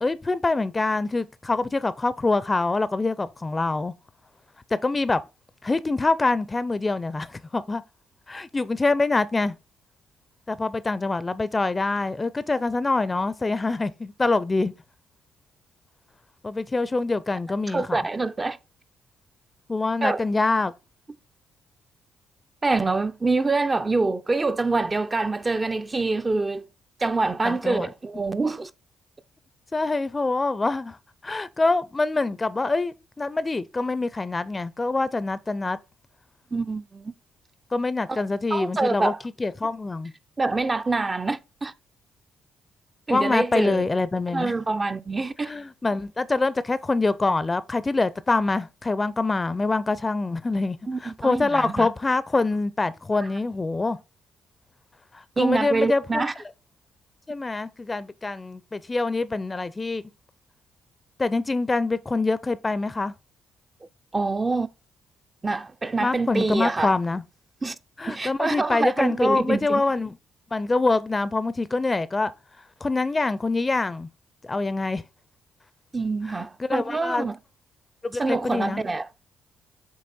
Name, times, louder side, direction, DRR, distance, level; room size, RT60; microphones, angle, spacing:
voice 1, 0.0-3.9 4.7-5.2 5.6-7.8 8.3-9.5 10.5-14.7 16.4-18.0 19.7-20.7 27.4-27.9 29.7-31.0 31.2-35.8 37.7-39.1 39.4-40.1 43.1-44.5 45.5-54.0 55.1-56.2 57.3-60.0 61.2-63.1 66.0-67.2 68.0-70.1 70.5-72.3 72.8-74.1 74.4-75.0 76.3-77.3 78.0-78.8, left 3 dB, 30° left, 0.5 m, -25 dB
voice 2, 17.7-18.6 20.0-20.2 22.6-26.7 27.0-28.7 36.5-37.1 38.1-38.2 38.5-39.2 40.4-41.7 43.1-43.8 44.3-45.5 50.9-51.9 53.1-53.3 55.4-56.3 64.1-64.7 65.4-67.0 67.6-67.8 68.1-69.8 75.9-77.4 78.2-79.1, right 3 dB, 30° right, 0.5 m, -25 dB
7.7 x 3.2 x 4.2 m
hypercardioid pair, 50°, 0 cm